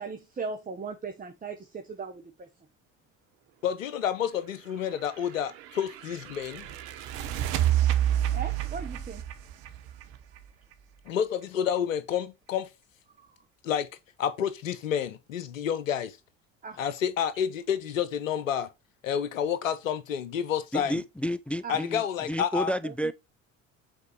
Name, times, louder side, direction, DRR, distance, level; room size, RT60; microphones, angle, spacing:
voice 1, 0.0-2.5 8.3-9.2 13.2-13.3 16.6-16.8 21.6-21.8 22.8-23.1, right 5 dB, 20° right, 1.2 m, -38 dB
voice 2, 3.6-6.7 11.1-12.7 13.6-13.9 14.2-16.2 16.8-18.7 19.0-21.0 21.7-22.7, left 8 dB, 80° left, 0.8 m, -29 dB
sound 1, 5.0-10.7, right 11 dB, 60° right, 1.0 m, -29 dB
voice 3, 20.7-23.1, equal, 5° left, 0.3 m, -31 dB
8.1 x 4.4 x 3.2 m
figure-of-eight pair, 60°, 38 cm